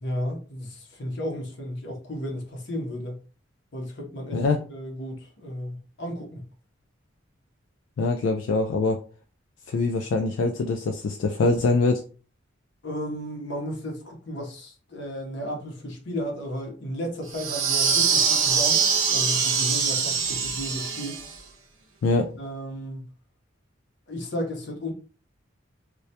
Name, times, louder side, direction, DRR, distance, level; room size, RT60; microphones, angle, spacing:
voice 1, 0.0-3.2 3.7-4.4 4.7-6.5 12.8-18.8 19.1-21.2 22.4-23.1 24.1-24.9, equal, 65° left, 0.7 m, -33 dB
voice 2, 8.0-9.0 9.7-12.0 22.0-22.3, left 3 dB, 80° left, 0.3 m, -23 dB
sound 1, 17.3-21.4, right 6 dB, 80° right, 0.6 m, -23 dB
2.3 x 2.1 x 2.7 m
head